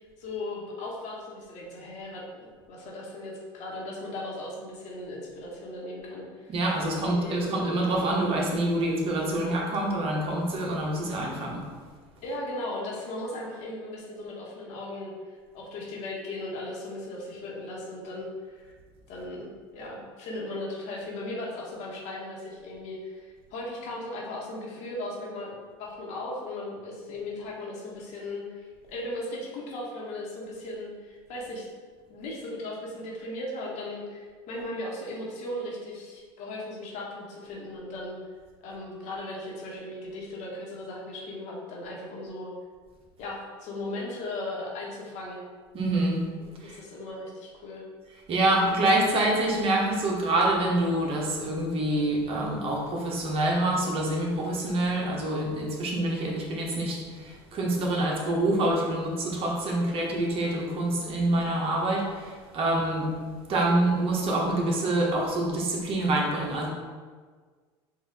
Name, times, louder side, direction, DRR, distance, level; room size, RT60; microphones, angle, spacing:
voice 1, 0.2-6.5 6.9-7.6 12.2-15.1 15.5-18.7 19.1-19.5 19.7-31.7 32.1-38.1 38.6-42.5 43.2-45.4 46.6-47.8, left 1 dB, 60° left, -3 dB, 1.3 m, -37 dB
voice 2, 6.5-11.7 45.7-46.2 46.6-46.8 48.3-63.1 63.5-66.7, right 1 dB, 45° right, -2 dB, 1.1 m, -26 dB
4.8 x 2.7 x 3.5 m, 1.5 s
hypercardioid pair, 90°, 13 cm